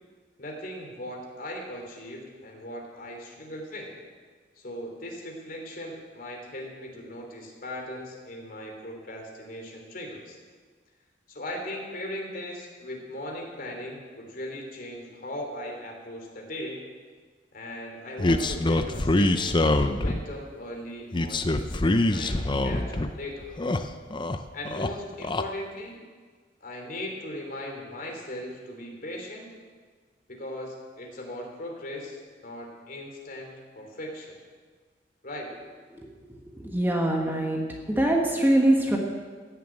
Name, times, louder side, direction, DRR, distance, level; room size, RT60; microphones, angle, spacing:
voice 1, 0.4-3.9 4.6-10.4 11.3-16.8 17.5-23.5 24.5-26.0 26.6-29.5 30.3-34.3 35.2-35.5, left 1 dB, 50° left, 1 dB, 3.1 m, -38 dB
sound 1, 18.2-20.3 21.1-23.1 23.4-24.4 24.7-25.4, left 2 dB, 25° left, 0.6 m, -24 dB
voice 2, 36.6-37.6 37.9-39.0, right 1 dB, 10° right, 0 dB, 1.5 m, -23 dB
15.5 x 7.2 x 9.0 m, 1.5 s
head